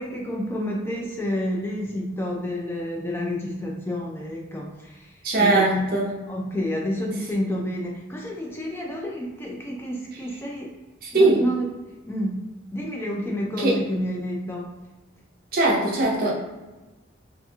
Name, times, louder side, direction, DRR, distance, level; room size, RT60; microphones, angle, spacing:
voice 1, 0.0-5.8 6.3-10.7 11.1-11.6 12.1-12.5 12.7-14.7, equal, 10° left, -1 dB, 0.4 m, -29 dB
voice 2, 5.2-6.2 11.0-11.4 13.6-13.8 15.5-16.3, right 2 dB, 50° right, -4 dB, 0.7 m, -20 dB
2.8 x 2.5 x 2.3 m, 1.1 s
head